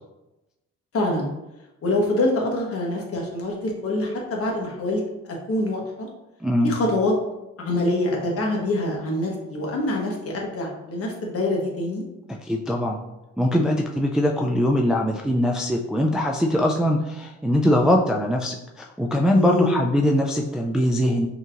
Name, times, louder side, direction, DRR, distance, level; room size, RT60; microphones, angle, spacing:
voice 1, 0.9-1.3 1.8-5.0 5.5-6.1 6.6-7.1 7.6-12.0 19.3-19.8, left 2 dB, 50° left, -1 dB, 1.2 m, -25 dB
voice 2, 6.4-6.8 12.4-13.0 13.4-21.3, equal, ahead, 0 dB, 0.3 m, -22 dB
5.5 x 2.9 x 2.5 m, 0.97 s
cardioid pair, 90°, 30 cm